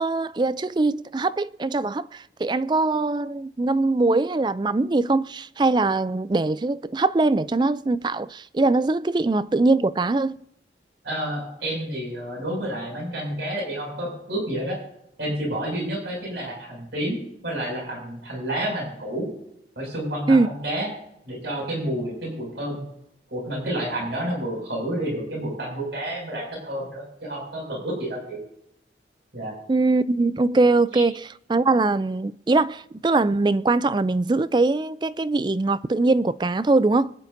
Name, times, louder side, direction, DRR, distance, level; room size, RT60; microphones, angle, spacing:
voice 1, 0.0-10.4 20.3-20.5 29.7-31.2 31.5-37.1, right 3 dB, 25° right, 0.3 m, -22 dB
voice 2, 11.0-14.8 15.2-19.3 19.7-20.9 21.2-22.8 23.3-28.4 29.3-29.5 30.9-31.0, right 1 dB, 80° right, 6.5 m, -30 dB
25.0 x 10.5 x 2.7 m
head